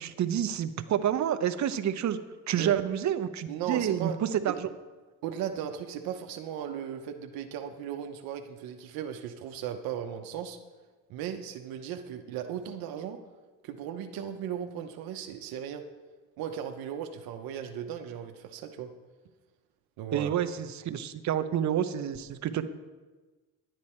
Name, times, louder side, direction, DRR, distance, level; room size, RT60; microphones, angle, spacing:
voice 1, 0.0-2.2 2.5-4.7 20.1-22.7, right 10 dB, 55° right, 10 dB, 0.8 m, -29 dB
voice 2, 3.5-4.2 4.5-4.6 5.2-10.6 11.1-13.2 13.6-15.8 16.4-18.9 20.0-20.4, right 9 dB, 85° right, 5 dB, 0.9 m, -36 dB
11.0 x 9.1 x 4.4 m, 1.3 s
cardioid pair, 85°, 35 cm